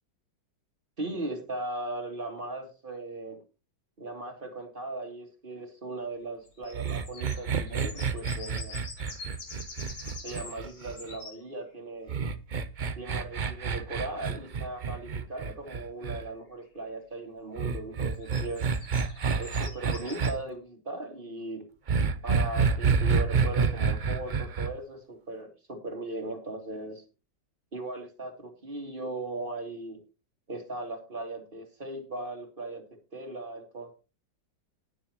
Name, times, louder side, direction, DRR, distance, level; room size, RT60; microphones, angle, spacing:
voice 1, 1.0-3.4 4.0-8.8 10.1-12.1 13.0-18.7 19.4-21.6 22.2-27.0 27.7-30.0 30.5-32.8 33.1-33.9, right 2 dB, 30° right, 3 dB, 2.8 m, -38 dB
sound 1, 6.5-11.4 14.2-14.3 16.8-16.9 18.1-20.4, left 4 dB, 90° left, 3.3 m, -45 dB
sound 2, 6.7-11.2 12.1-16.2 17.6-20.3 21.9-24.7, right 5 dB, 70° right, 0.4 m, -28 dB
19.0 x 7.3 x 2.9 m, 0.30 s
omnidirectional pair, 1.9 m